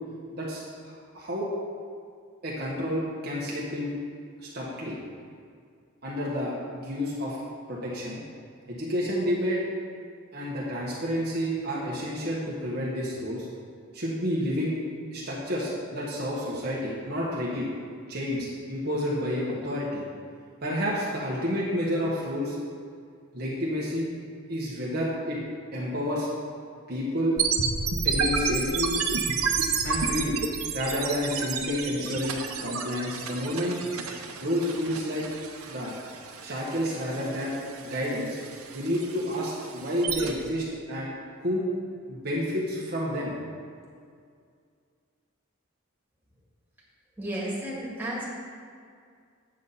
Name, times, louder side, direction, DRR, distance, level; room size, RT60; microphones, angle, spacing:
voice 1, 0.3-1.5 2.4-3.9 4.5-4.9 6.0-7.4 7.7-8.2 8.7-9.6 10.3-13.5 13.9-14.7 15.1-17.6 18.1-20.0 20.6-22.6 23.3-24.1 24.5-25.4 25.7-26.3 26.9-27.4 28.0-28.9 29.8-30.4 30.7-33.8 34.4-35.2 35.7-35.9 36.4-37.6 37.8-38.4 38.7-41.1 41.4-41.7 42.1-43.3, equal, 45° right, -5 dB, 1.3 m, -30 dB
sound 1, 27.4-40.3, right 5 dB, 85° right, 0.9 m, -31 dB
voice 2, 47.2-48.2, right 1 dB, 10° right, -7 dB, 2.1 m, -32 dB
8.7 x 7.3 x 4.1 m, 2.2 s
head